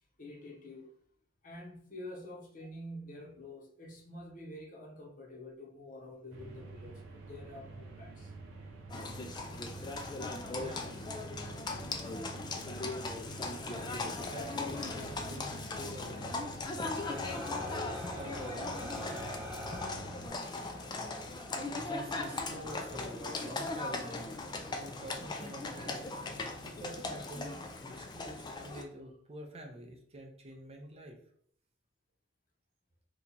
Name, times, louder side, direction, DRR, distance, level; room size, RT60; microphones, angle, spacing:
voice 1, 0.2-0.9 1.4-8.3 10.6-11.0 22.2-22.3, left 1 dB, 45° left, 0 dB, 0.8 m, -48 dB
sound 1, 6.3-20.3, right 3 dB, 85° right, 0.6 m, -48 dB
Livestock farm animals working animals, 8.9-28.8, left 3 dB, 20° left, 0.3 m, -39 dB
voice 2, 10.5-10.9 13.6-19.3 20.9-21.4 21.8-24.4 24.6-26.1 26.6-31.2, right 1 dB, 30° right, 2 dB, 0.5 m, -48 dB
sound 2, 16.9-26.1, left 1 dB, 15° right, 0.9 m, -47 dB
2.8 x 2.3 x 3.9 m, 0.64 s
head